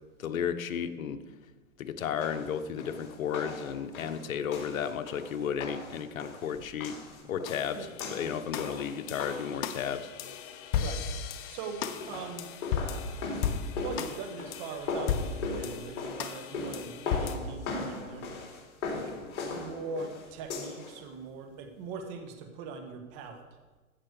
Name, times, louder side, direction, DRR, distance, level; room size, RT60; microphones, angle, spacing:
voice 1, 0.2-1.2 1.8-7.0 7.3-10.1, left 8 dB, 70° left, 8 dB, 1.2 m, -33 dB
sound 1, 2.2-9.6 11.8-21.0, left 3 dB, 50° left, 3.9 m, -39 dB
sound 2, 7.5-17.3, left 7 dB, 35° left, 1.0 m, -36 dB
voice 2, 10.8-12.5 13.8-18.5 19.0-19.2 19.5-23.4, right 4 dB, 35° right, 6 dB, 1.8 m, -41 dB
15.0 x 6.0 x 6.9 m, 1.2 s
hypercardioid pair, 150°, 43 cm